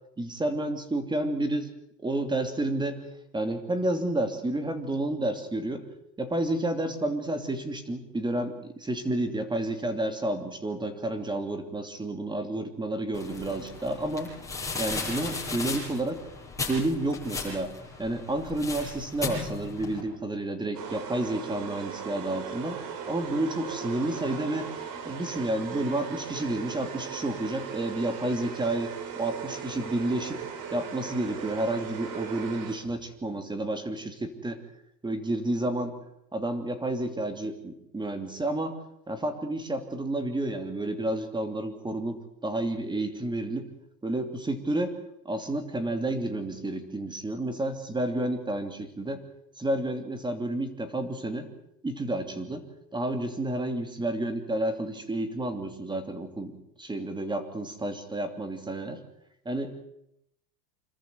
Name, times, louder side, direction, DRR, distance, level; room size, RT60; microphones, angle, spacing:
voice 1, 0.2-1.7 2.0-3.1 3.3-5.9 6.2-14.3 14.8-16.2 16.7-17.7 18.0-22.8 23.1-24.7 25.0-30.4 30.7-34.6 35.0-35.9 36.3-38.8 39.1-43.7 44.0-45.0 45.2-49.2 49.6-51.5 51.8-52.6 52.9-56.5 56.8-59.0 59.4-59.8, right 1 dB, 10° right, 8 dB, 3.0 m, -30 dB
sound 1, 13.1-20.0, left 4 dB, 5° left, 7.6 m, -36 dB
sound 2, 20.7-33.1, right 7 dB, 40° right, 4.0 m, -38 dB
26.5 x 14.0 x 9.4 m, 0.78 s
supercardioid pair, 140°, 48 cm